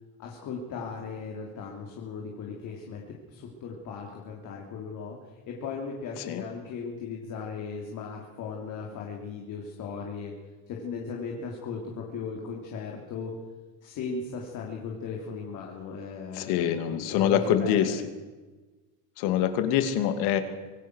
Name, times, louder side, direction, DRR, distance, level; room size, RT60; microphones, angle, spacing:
voice 1, 0.2-3.0 3.3-5.2 5.5-10.3 10.7-13.3 13.8-18.0, left 5 dB, 45° left, 0 dB, 3.7 m, -37 dB
voice 2, 16.3-18.0 19.2-20.4, left 9 dB, 60° left, 8 dB, 2.6 m, -25 dB
26.0 x 18.5 x 6.4 m, 1.3 s
cardioid pair, 165°, 43 cm